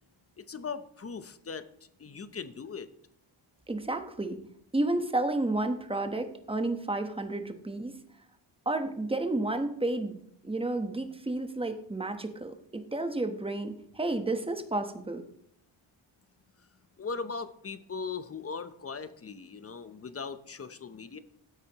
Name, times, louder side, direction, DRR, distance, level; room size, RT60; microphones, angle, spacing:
voice 1, 0.4-2.9 16.6-16.7 17.0-21.2, left 5 dB, 30° left, 12 dB, 0.8 m, -39 dB
voice 2, 3.7-4.4 4.7-7.9 8.6-10.2 10.4-15.2, right 2 dB, 10° right, 7 dB, 1.0 m, -31 dB
15.5 x 8.2 x 3.0 m, 0.70 s
wide cardioid pair, 115°, 49 cm